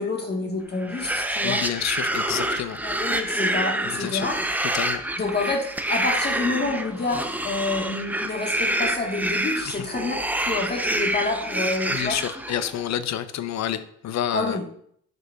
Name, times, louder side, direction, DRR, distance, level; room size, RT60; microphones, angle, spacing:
voice 1, 0.0-1.6 2.8-4.3 5.2-10.2 10.4-12.2 14.3-14.6, left 3 dB, 35° left, 1 dB, 1.4 m, -28 dB
sound 1, 0.8-12.8, right 1 dB, 5° right, 0.5 m, -27 dB
voice 2, 1.4-2.8 3.8-4.3 4.6-5.0 9.7-9.8 11.9-14.6, left 10 dB, 65° left, 12 dB, 0.6 m, -29 dB
10.5 x 5.1 x 2.3 m, 0.67 s
cardioid pair, 90°, 30 cm